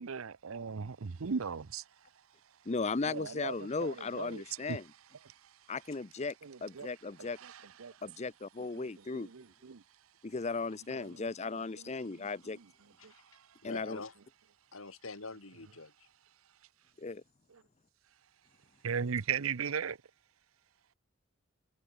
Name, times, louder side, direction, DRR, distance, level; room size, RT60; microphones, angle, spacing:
voice 1, 0.0-1.8 3.1-4.4 4.7-4.8 5.2-5.3 6.4-6.9 7.4-7.9 8.8-8.9 9.1-9.8 11.0-11.3 11.8-12.3 13.0-13.1 18.8-20.0, right 6 dB, 90° right, 0.7 m, -38 dB
voice 2, 2.7-4.8 5.7-6.3 6.6-7.4 8.0-9.3 10.2-12.6 13.6-14.0 17.0-17.2, left 4 dB, 30° left, 0.6 m, -36 dB
voice 3, 13.6-14.1 14.7-15.9, left 3 dB, 80° left, 3.0 m, -45 dB
head